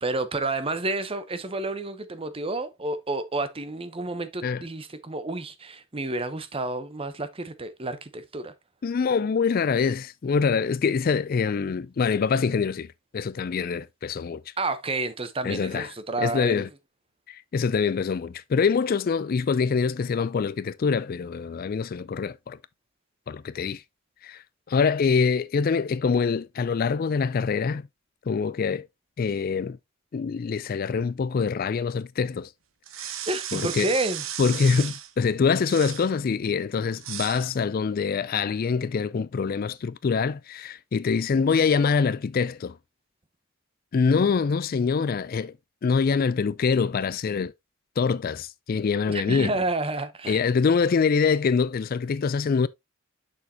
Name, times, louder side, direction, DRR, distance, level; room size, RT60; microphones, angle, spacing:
voice 1, 0.0-8.5 14.6-16.6 33.3-34.2 49.1-50.4, right 2 dB, 25° right, 0.8 m, -30 dB
voice 2, 8.8-12.9 13.1-14.4 15.4-15.9 16.2-16.7 17.3-22.6 23.3-23.8 24.2-27.9 28.3-28.9 29.2-29.8 30.1-32.5 33.0-33.1 33.5-33.9 34.4-42.8 43.9-45.5 45.8-47.5 48.0-49.5 50.3-52.7, left 5 dB, 45° left, 0.3 m, -24 dB
sound 1, 32.8-35.1 35.6-36.1 37.0-37.5, right 10 dB, 80° right, 1.0 m, -35 dB
7.0 x 6.3 x 2.8 m
head